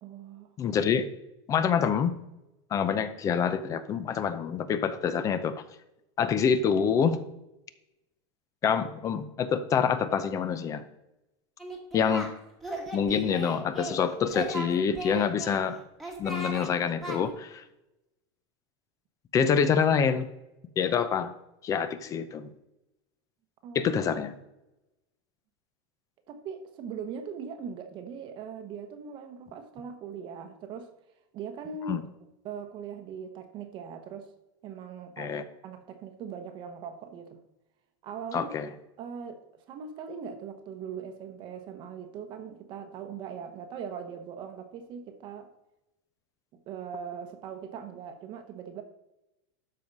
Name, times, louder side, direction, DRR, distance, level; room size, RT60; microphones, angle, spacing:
voice 1, 0.0-0.5 23.6-23.9 26.3-30.9 31.3-32.0 32.4-34.3 34.6-35.3 35.6-37.4 38.0-38.7 39.0-45.5 46.7-48.8, right 6 dB, 35° right, 6 dB, 1.0 m, -40 dB
voice 2, 0.6-1.0 1.5-2.1 2.7-5.6 6.2-7.2 8.6-10.8 11.9-12.3 12.9-15.8 16.2-17.6 19.3-20.3 20.8-21.3 21.6-22.5 23.7-24.3 31.9-32.0 35.2-35.4 38.3-38.7, left 7 dB, 20° left, 13 dB, 0.6 m, -26 dB
Singing, 11.6-12.3 12.6-14.0 14.3-15.6 16.0-16.7 17.0-17.2, right 2 dB, ahead, 1.5 m, -37 dB
12.5 x 4.7 x 5.3 m, 0.91 s
supercardioid pair, 160°, 15 cm